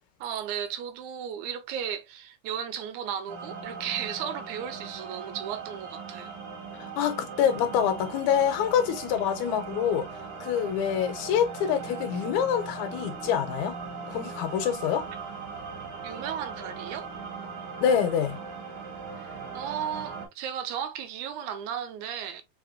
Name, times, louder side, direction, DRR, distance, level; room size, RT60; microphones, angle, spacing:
voice 1, 0.2-6.4 16.0-17.1 19.2-22.4, right 9 dB, 85° right, 2.1 m, -35 dB
sound 1, 3.3-20.3, right 5 dB, 55° right, 2.0 m, -39 dB
voice 2, 6.8-10.1 10.4-13.8 14.1-15.1 17.8-18.4, left 8 dB, 75° left, 2.1 m, -26 dB
4.9 x 3.4 x 2.4 m
omnidirectional pair, 3.4 m